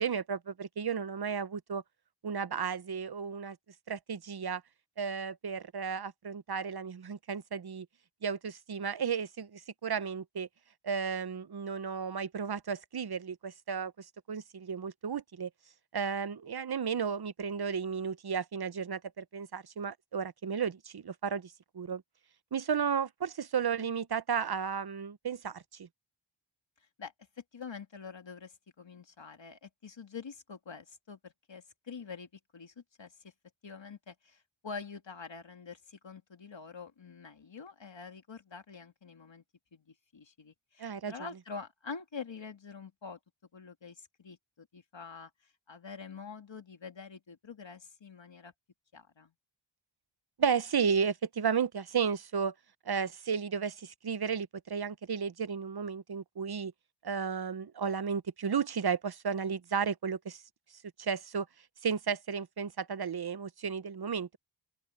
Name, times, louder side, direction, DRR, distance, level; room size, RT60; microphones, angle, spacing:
voice 1, 0.0-1.8 2.2-3.6 3.9-4.6 5.0-7.9 8.2-10.5 10.8-13.9 14.3-15.5 15.9-22.0 22.5-25.9 40.8-41.1 50.4-52.5 52.9-56.7 57.0-60.4 61.0-61.5 61.8-64.4, right 6 dB, 50° right, 0.8 m, -33 dB
voice 2, 27.0-33.3 33.6-39.4 39.7-43.2 43.5-45.3 45.7-48.5 48.9-49.3, left 5 dB, 60° left, 2.4 m, -46 dB
open air
wide cardioid pair, 80°, 49 cm